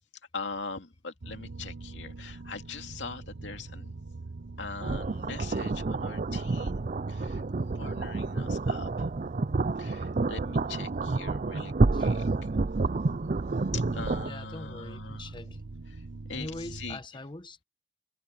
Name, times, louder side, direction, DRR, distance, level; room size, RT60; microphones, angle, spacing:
voice 1, 0.3-3.9 4.6-7.4 7.8-9.1 9.8-12.3 13.7-15.3 15.9-16.0 16.3-17.0, left 4 dB, 80° left, 2.5 m, -42 dB
sound 1, 1.2-16.9, right 3 dB, 80° right, 0.9 m, -43 dB
sound 2, 4.8-14.3, right 3 dB, 45° right, 0.5 m, -29 dB
voice 2, 14.2-15.6 16.3-17.6, left 2 dB, 25° left, 1.0 m, -42 dB
head